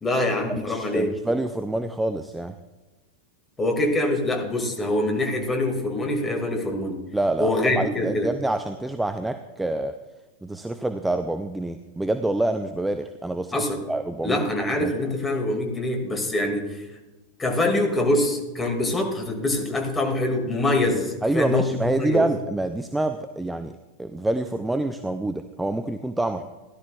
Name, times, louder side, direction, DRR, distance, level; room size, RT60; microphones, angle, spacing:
voice 1, 0.0-1.1 3.6-7.0 7.4-8.3 13.5-13.8 14.2-16.8 17.4-21.7 22.0-22.3, left 1 dB, 15° left, 2 dB, 2.1 m, -24 dB
voice 2, 0.6-2.6 7.1-9.9 10.4-13.6 13.9-14.4 14.8-14.9 21.2-26.4, right 2 dB, 5° right, 8 dB, 0.5 m, -27 dB
16.0 x 11.5 x 2.4 m, 1.1 s
figure-of-eight pair, 90°, 0 cm